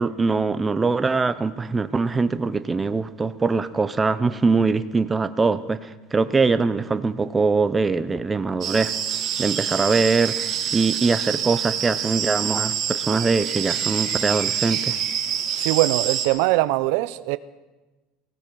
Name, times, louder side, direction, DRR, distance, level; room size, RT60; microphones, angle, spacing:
voice 1, 0.0-9.0 9.4-15.0, right 4 dB, 15° right, 12 dB, 0.5 m, -22 dB
sound 1, 8.6-16.3, right 9 dB, 40° right, 1.7 m, -26 dB
voice 2, 15.6-17.4, right 18 dB, 70° right, 15 dB, 0.5 m, -21 dB
18.5 x 16.5 x 3.8 m, 1.2 s
supercardioid pair, 145°, 0 cm